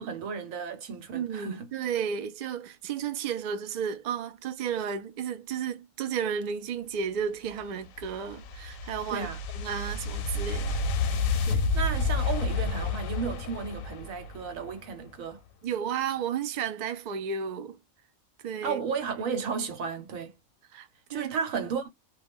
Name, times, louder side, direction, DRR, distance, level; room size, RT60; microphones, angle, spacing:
voice 1, 0.0-1.7 9.1-9.4 11.7-15.4 18.6-20.4 21.1-21.9, right 6 dB, 90° right, 1.2 m, -33 dB
voice 2, 1.1-9.3 9.5-10.8 11.5-11.7 15.6-17.8 18.4-18.8 20.7-21.3, right 7 dB, 65° right, 0.4 m, -33 dB
sound 1, 7.5-14.7, left 3 dB, 85° left, 1.0 m, -30 dB
2.3 x 2.1 x 3.4 m
omnidirectional pair, 1.4 m